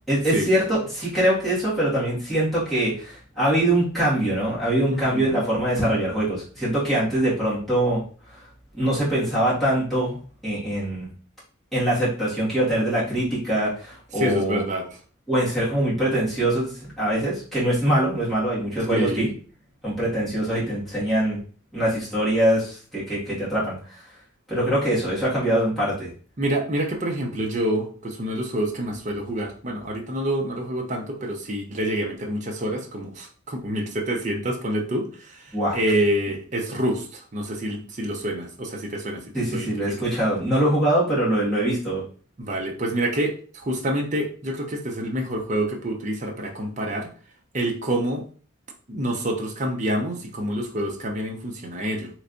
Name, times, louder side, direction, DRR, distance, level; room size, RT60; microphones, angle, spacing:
voice 1, 0.1-8.0 8.7-11.1 11.7-14.6 15.3-16.7 17.0-19.3 19.8-21.4 21.7-23.8 24.5-26.1 35.5-35.8 39.3-42.0, right 1 dB, ahead, -10 dB, 1.8 m, -23 dB
voice 2, 4.9-5.4 14.2-14.9 18.9-19.3 26.4-35.1 35.7-39.7 42.4-43.4 43.6-47.1 47.5-48.2 48.9-52.1, right 1 dB, 35° right, 2 dB, 0.6 m, -27 dB
3.3 x 3.1 x 2.6 m, 0.41 s
head